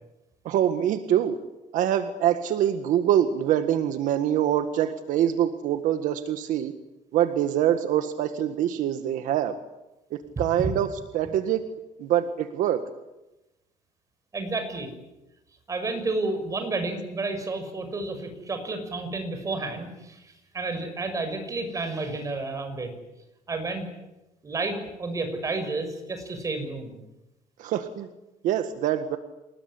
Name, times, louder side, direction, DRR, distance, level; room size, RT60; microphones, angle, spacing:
voice 1, 0.5-1.4 1.7-6.7 7.1-9.6 10.1-11.6 12.0-12.8 27.6-28.1 28.4-29.2, right 10 dB, 70° right, 9 dB, 1.8 m, -24 dB
voice 2, 14.3-14.9 15.7-20.3 20.5-22.9 23.5-23.9 24.4-27.0, right 3 dB, 25° right, 7 dB, 6.2 m, -31 dB
28.5 x 20.5 x 10.0 m, 0.98 s
cardioid pair, 150°, 14 cm